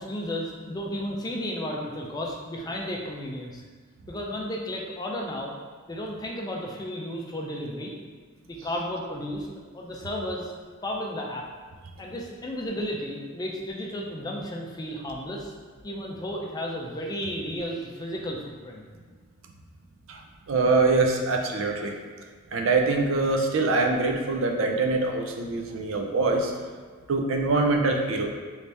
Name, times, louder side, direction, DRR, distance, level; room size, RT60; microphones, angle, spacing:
voice 1, 0.0-3.6 4.1-5.5 5.9-7.9 8.4-9.5 9.7-10.5 10.8-11.5 12.0-15.5 15.8-18.9, equal, 20° left, -1 dB, 0.4 m, -33 dB
voice 2, 20.5-22.0 22.5-26.5 27.1-28.3, right 3 dB, 75° right, 2 dB, 0.4 m, -24 dB
3.2 x 2.7 x 3.3 m, 1.5 s
head